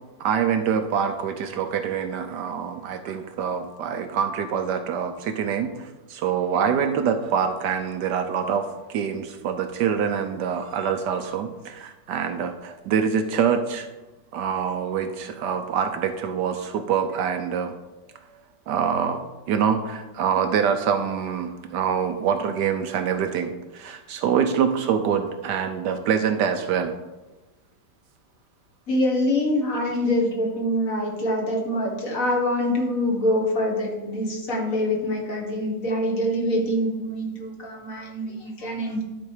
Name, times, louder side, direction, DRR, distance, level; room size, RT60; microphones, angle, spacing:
voice 1, 0.2-13.9 14.3-17.7 18.3-19.2 19.5-27.0, right 7 dB, 70° right, 7 dB, 1.1 m, -25 dB
voice 2, 28.9-39.0, left 1 dB, 50° left, 0 dB, 1.8 m, -25 dB
11.5 x 4.2 x 4.8 m, 1.1 s
omnidirectional pair, 2.0 m